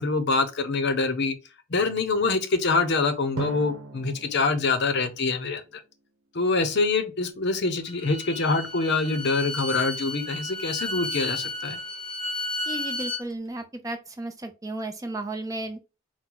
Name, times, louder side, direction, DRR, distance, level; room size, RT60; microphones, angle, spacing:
voice 1, 0.0-1.3 1.7-5.6 6.3-11.8, left 3 dB, 55° left, 0.7 m, -25 dB
Drum, 3.4-6.3, right 3 dB, 85° right, 0.8 m, -38 dB
Bowed string instrument, 7.9-13.2, left 2 dB, 25° left, 0.8 m, -33 dB
voice 2, 12.7-15.8, right 2 dB, 15° right, 0.6 m, -34 dB
4.5 x 2.1 x 3.8 m
head